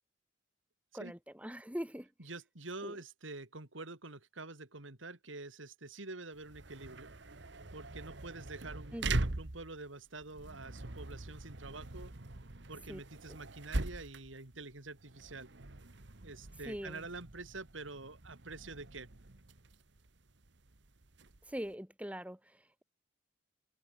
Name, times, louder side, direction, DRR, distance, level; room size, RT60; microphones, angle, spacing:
voice 1, 0.9-2.1 2.8-3.0 8.9-9.2 12.9-13.0 16.6-17.0 21.5-22.8, equal, 5° right, 3.3 m, -42 dB
voice 2, 2.2-7.1 7.7-12.1 12.7-15.5 16.2-19.1, right 3 dB, 85° right, 3.3 m, -47 dB
sound 1, 6.3-21.7, right 2 dB, 65° right, 1.5 m, -42 dB
head